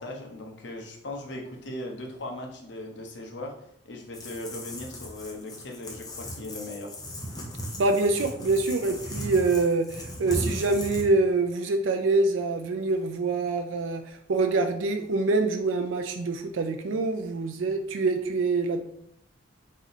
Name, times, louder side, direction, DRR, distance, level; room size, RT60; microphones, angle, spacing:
voice 1, 0.0-3.5 3.8-7.0, left 1 dB, 65° left, 1 dB, 0.9 m, -38 dB
sound 1, 4.1-11.1, equal, 20° left, 0.8 m, -37 dB
voice 2, 7.8-18.8, right 3 dB, 85° right, 6 dB, 0.4 m, -25 dB
4.0 x 3.1 x 4.0 m, 0.73 s
head